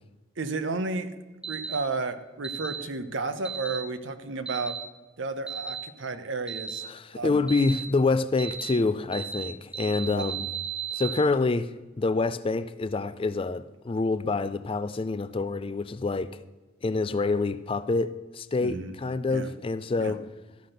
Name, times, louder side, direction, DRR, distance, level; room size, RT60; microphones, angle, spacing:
voice 1, 0.4-1.1 1.4-4.7 5.2-6.8 7.1-7.4 10.1-10.2 18.6-18.9 19.3-19.5 20.0-20.1, right 3 dB, 70° right, 0.9 m, -32 dB
sound 1, 1.4-1.7 2.4-2.8 3.4-3.8 4.5-4.8 5.5-5.8 6.5-6.8 7.5-7.8 8.4-8.7 9.1-9.4 9.7-11.1, right 7 dB, 5° right, 0.9 m, -34 dB
voice 2, 6.8-10.5 10.9-16.3 16.8-20.2, left 3 dB, 30° left, 0.3 m, -27 dB
13.0 x 5.9 x 6.6 m
head